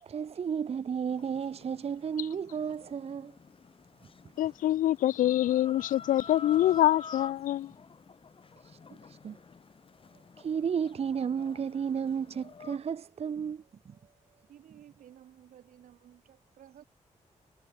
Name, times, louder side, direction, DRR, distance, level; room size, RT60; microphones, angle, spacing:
voice 1, 0.0-3.4 8.6-8.8 9.1-9.4 10.4-14.0, right 7 dB, 50° right, 0.6 m, -33 dB
Chicken rooster, 1.1-12.8, left 5 dB, 45° left, 1.3 m, -49 dB
voice 2, 4.4-7.7, left 13 dB, 90° left, 0.4 m, -25 dB
voice 3, 14.5-16.8, right 10 dB, 90° right, 5.2 m, -55 dB
cardioid pair, 70°, 13 cm